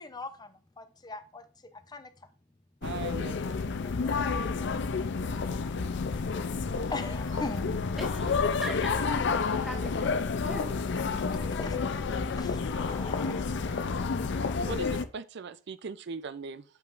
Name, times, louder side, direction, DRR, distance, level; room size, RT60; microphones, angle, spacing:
voice 1, 0.0-1.4 1.9-2.1 3.8-4.9 6.9-7.9 10.9-11.8 12.3-14.7, left 3 dB, 20° left, 0.6 m, -42 dB
sound 1, 2.8-15.0, left 4 dB, 65° left, 0.5 m, -30 dB
voice 2, 2.8-3.4 14.6-16.6, right 5 dB, 65° right, 0.5 m, -39 dB
voice 3, 8.0-8.8 9.1-10.1 10.4-10.7, right 1 dB, ahead, 1.6 m, -40 dB
7.1 x 5.5 x 2.5 m
head